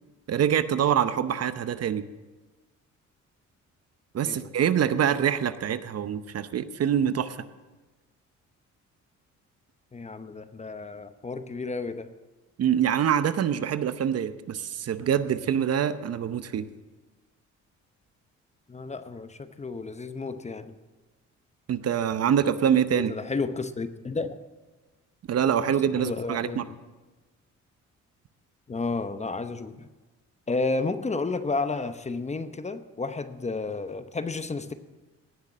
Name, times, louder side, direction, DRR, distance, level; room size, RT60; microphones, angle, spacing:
voice 1, 0.3-2.0 4.1-7.4 12.6-16.6 21.7-23.1 25.3-26.6, right 9 dB, 55° right, 12 dB, 0.8 m, -25 dB
voice 2, 9.9-12.1 18.7-20.8 22.9-24.4 25.9-26.8 28.7-29.9 30.5-34.7, left 3 dB, 20° left, 11 dB, 0.8 m, -32 dB
17.5 x 6.6 x 7.4 m, 1.2 s
cardioid pair, 90°, 30 cm